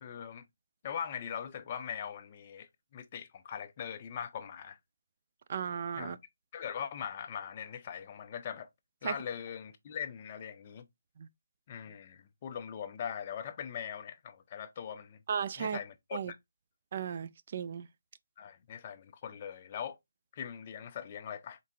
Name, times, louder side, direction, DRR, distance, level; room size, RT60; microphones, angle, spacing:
voice 1, 0.0-0.4 0.8-4.8 6.0-6.2 6.5-8.7 9.0-10.8 11.7-15.2 15.6-16.4 18.4-20.0 20.3-21.6, left 8 dB, 25° left, 0.5 m, -41 dB
voice 2, 5.5-6.2 9.0-9.1 11.2-11.3 15.3-15.8 16.1-16.3 16.9-17.9, right 7 dB, 35° right, 0.3 m, -35 dB
3.8 x 3.6 x 2.7 m
hypercardioid pair, 170°, 0 cm